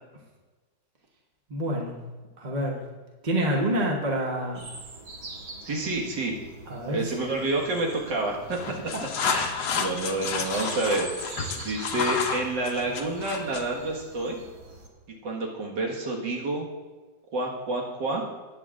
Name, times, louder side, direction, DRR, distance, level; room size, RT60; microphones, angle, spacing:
voice 1, 1.5-2.0 2.4-2.8 3.2-4.6 6.7-7.1 8.9-9.0 9.7-9.8, right 1 dB, 30° right, -1 dB, 1.1 m, -27 dB
sound 1, 4.5-14.9, right 2 dB, 55° right, 1.8 m, -44 dB
voice 2, 5.6-6.3 6.9-8.6 9.2-14.4 15.2-16.7 17.3-18.2, right 2 dB, 80° right, -1 dB, 2.3 m, -29 dB
sound 2, 8.4-13.7, left 6 dB, 80° left, 1.5 m, -31 dB
18.5 x 8.5 x 2.5 m, 1.3 s
omnidirectional pair, 1.9 m